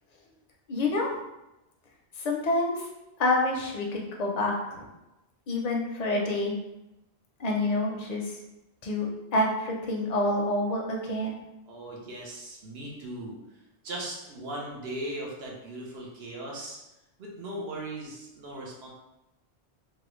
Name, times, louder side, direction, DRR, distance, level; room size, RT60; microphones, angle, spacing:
voice 1, 0.7-1.1 2.2-2.9 3.2-4.9 5.5-6.5 7.4-8.3 8.8-9.1 9.3-11.4, left 2 dB, 45° left, 0 dB, 0.6 m, -27 dB
voice 2, 11.7-13.4 13.8-16.8 17.2-18.9, right 1 dB, 70° right, -3 dB, 1.0 m, -38 dB
3.1 x 2.4 x 3.0 m, 0.94 s
omnidirectional pair, 1.1 m